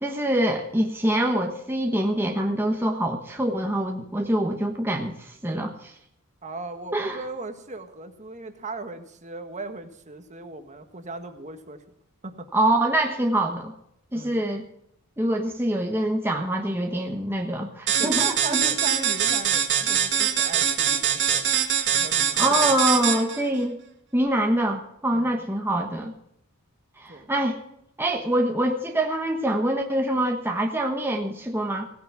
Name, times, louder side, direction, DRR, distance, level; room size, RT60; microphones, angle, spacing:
voice 1, 0.0-5.9 6.9-7.2 12.5-13.7 14.1-14.6 15.2-18.6 22.4-23.8 24.1-26.1 27.0-27.6 28.0-31.9, right 1 dB, 10° right, 2 dB, 1.2 m, -25 dB
voice 2, 6.4-11.8 12.2-12.8 14.1-14.5 18.0-21.6 21.9-22.7 25.1-25.5 27.1-27.3, right 3 dB, 35° right, 7 dB, 1.6 m, -37 dB
sound 1, 17.9-23.4, right 8 dB, 55° right, 1.7 m, -23 dB
17.0 x 9.3 x 5.9 m, 0.77 s
head